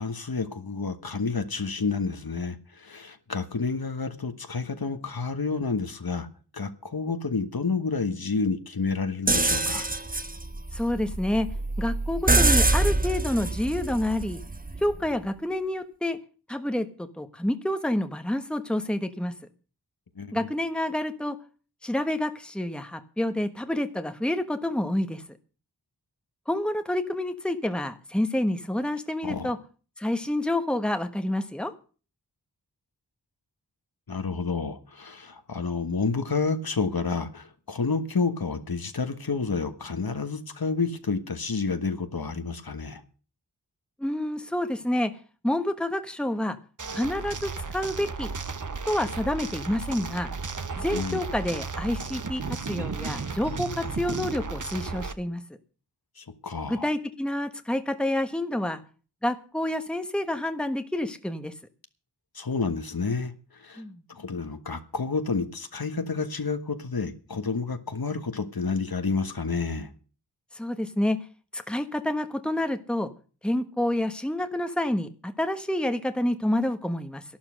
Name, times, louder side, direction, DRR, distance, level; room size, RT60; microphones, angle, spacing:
voice 1, 0.0-6.3 6.5-9.9 20.1-20.5 29.2-29.5 34.1-43.0 50.9-51.2 56.2-56.9 62.3-63.8 64.1-69.9, left 4 dB, 60° left, 1.5 m, -30 dB
sound 1, 9.3-15.1, right 2 dB, 20° right, 1.0 m, -25 dB
voice 2, 10.7-11.5 11.8-14.4 14.8-16.2 16.5-19.3 20.3-21.4 21.8-25.2 26.5-29.6 30.0-31.7 44.0-45.1 45.4-46.6 46.9-48.3 48.9-50.3 50.8-55.4 56.7-58.8 59.2-61.5 63.8-64.0 70.5-71.2 71.5-73.1 73.4-77.2, left 1 dB, ahead, 1.3 m, -28 dB
sound 2, 46.8-55.1, right 4 dB, 50° right, 1.1 m, -34 dB
12.0 x 11.5 x 6.3 m
wide cardioid pair, 50°, 41 cm